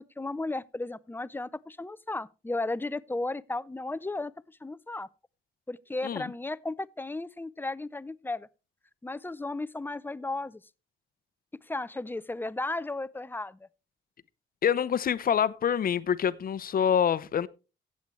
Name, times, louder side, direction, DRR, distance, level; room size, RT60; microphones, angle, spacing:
voice 1, 0.0-5.1 5.7-8.5 9.0-10.6 11.6-13.7, left 2 dB, 10° left, 0.5 m, -34 dB
voice 2, 14.6-17.5, left 8 dB, 45° left, 0.7 m, -26 dB
15.0 x 8.3 x 3.1 m
cardioid pair, 90°, 20 cm